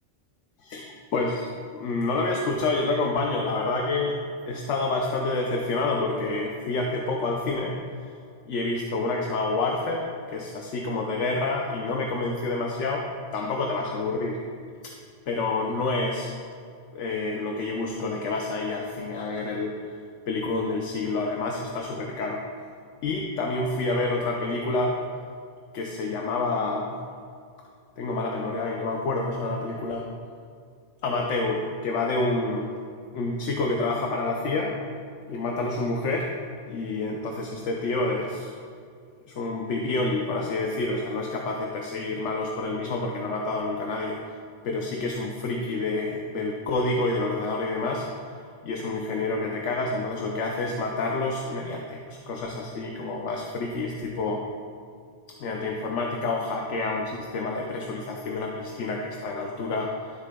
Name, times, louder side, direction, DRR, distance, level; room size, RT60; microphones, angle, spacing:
voice 1, 0.6-4.2 4.5-7.8 8.5-13.1 13.3-14.4 15.3-16.3 16.9-19.9 20.3-22.4 23.0-25.0 25.7-27.0 28.0-30.0 31.0-32.7 33.1-34.8 35.3-36.3 36.7-38.5 39.3-44.2 44.6-48.1 48.6-54.5 55.4-60.1, left 3 dB, 80° left, 1 dB, 1.0 m, -28 dB
12.5 x 7.3 x 2.2 m, 2.2 s
omnidirectional pair, 1.2 m